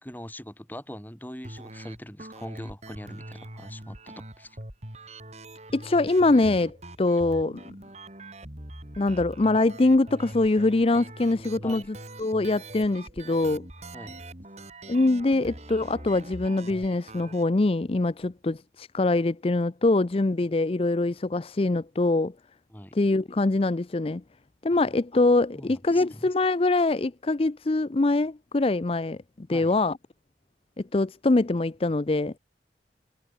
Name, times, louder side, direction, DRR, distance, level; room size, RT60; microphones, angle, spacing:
voice 1, 0.0-4.6 11.6-11.9 13.9-14.2 22.7-22.9 24.7-24.8 25.5-26.2 29.5-29.8, equal, 10° left, 3.5 m, -42 dB
sound 1, 1.4-17.4, right 1 dB, 40° right, 4.7 m, -43 dB
voice 2, 5.7-7.7 9.0-13.7 14.9-22.3 22.9-24.2 24.6-30.0 30.9-32.3, left 2 dB, 30° left, 0.5 m, -24 dB
head